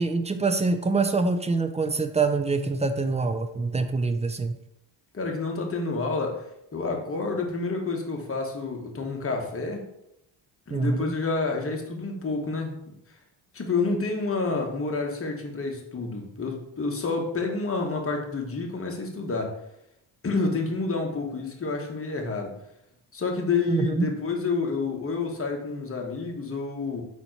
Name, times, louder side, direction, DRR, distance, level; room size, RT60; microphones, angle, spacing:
voice 1, 0.0-4.5 10.7-11.1 23.7-24.1, right 3 dB, 15° right, 8 dB, 0.3 m, -25 dB
voice 2, 5.1-6.4 6.7-9.8 10.7-12.8 13.5-19.5 20.2-22.5 23.1-27.0, left 3 dB, 25° left, 2 dB, 1.1 m, -29 dB
4.2 x 2.8 x 4.4 m, 0.80 s
supercardioid pair, 65°, 49 cm